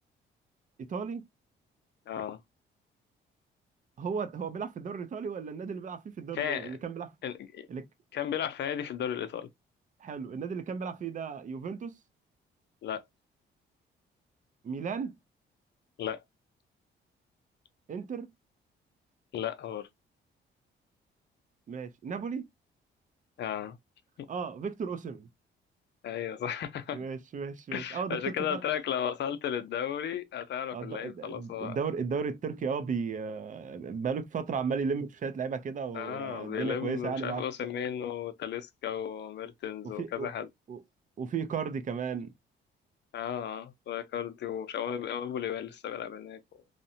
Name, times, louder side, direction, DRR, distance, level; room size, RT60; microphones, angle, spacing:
voice 1, 0.8-1.2 4.0-7.1 7.7-7.9 10.0-11.9 14.6-15.2 17.9-18.3 21.7-22.5 24.3-25.3 26.9-28.6 30.7-37.5 40.0-40.3 40.7-40.8 41.2-42.3, right 5 dB, 40° right, 0.5 m, -35 dB
voice 2, 2.1-2.4 6.3-6.8 7.2-7.7 8.1-9.5 12.8-13.0 16.0-16.2 19.3-19.9 23.4-23.8 24.2-24.3 26.0-27.0 27.7-31.8 35.9-40.5 43.1-46.4, left 9 dB, 60° left, 0.6 m, -34 dB
2.7 x 2.1 x 2.7 m
cardioid pair, 90°, 20 cm